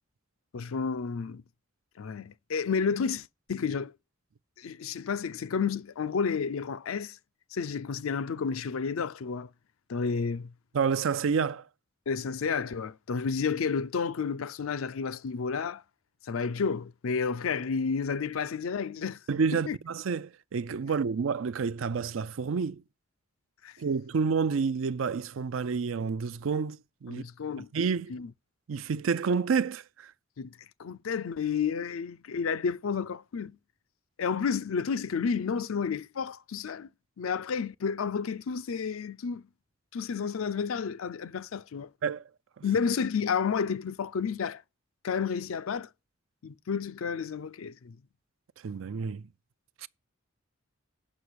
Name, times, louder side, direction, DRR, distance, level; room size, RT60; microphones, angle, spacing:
voice 1, 0.5-1.4 2.0-3.9 4.6-7.2 7.5-9.5 9.9-10.5 12.1-15.8 16.2-19.2 19.5-19.8 23.6-23.7 27.1-27.7 28.1-28.3 30.4-30.5 30.8-33.6 34.2-36.9 37.2-39.5 39.9-41.9 42.6-44.6 45.0-45.9 46.4-48.0, left 6 dB, 85° left, 0.5 m, -31 dB
voice 2, 10.7-11.6 19.3-22.8 23.8-27.2 27.7-28.1 28.7-30.1 42.0-42.2 48.6-49.2 49.8-49.9, right 5 dB, 75° right, 0.4 m, -29 dB
8.2 x 5.9 x 6.2 m
head